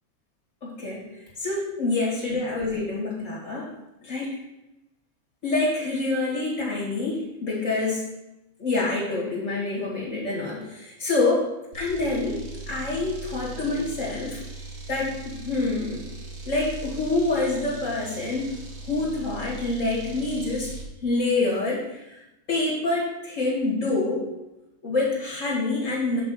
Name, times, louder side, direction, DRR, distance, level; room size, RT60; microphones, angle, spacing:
voice 1, 0.6-1.0 1.4-3.7 4.0-4.3 5.4-8.0 8.6-11.5 11.7-14.4 14.9-16.0 16.4-18.6 18.9-20.7 21.0-22.2 22.5-24.3 24.8-26.2, left 2 dB, 55° left, -6 dB, 2.6 m, -26 dB
sound 1, 11.7-20.9, right 2 dB, 70° right, 1.6 m, -39 dB
6.9 x 5.9 x 4.4 m, 0.95 s
omnidirectional pair, 1.5 m